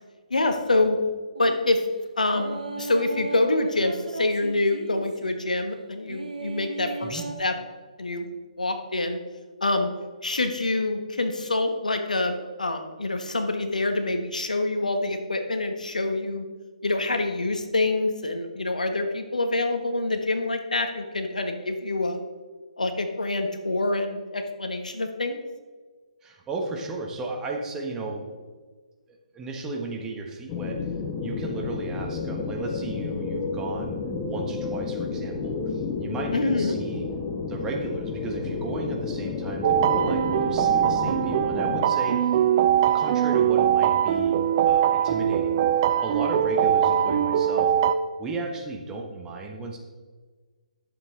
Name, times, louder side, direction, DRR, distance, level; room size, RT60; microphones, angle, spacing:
voice 1, 0.3-1.0 1.4-1.8 2.2-7.5 8.0-8.3 8.6-9.2 9.6-9.9 10.2-16.5 16.8-22.2 22.8-25.4 36.3-36.8, left 2 dB, 75° left, 6 dB, 1.2 m, -26 dB
sound 1, 1.4-1.7 2.3-5.3 6.1-7.4, right 3 dB, 75° right, 1.4 m, -36 dB
voice 2, 26.2-28.5 29.3-30.8 31.2-34.0 34.2-37.0 37.4-42.3 42.9-44.3 44.6-45.6 46.0-47.7 48.2-49.8, right 2 dB, 15° right, 1 dB, 1.1 m, -34 dB
sound 2, 30.5-41.9, left 4 dB, 20° left, 0.8 m, -31 dB
sound 3, 39.6-47.9, right 9 dB, 35° right, 0.5 m, -22 dB
11.0 x 7.3 x 3.7 m, 1.4 s
figure-of-eight pair, 135°, 4 cm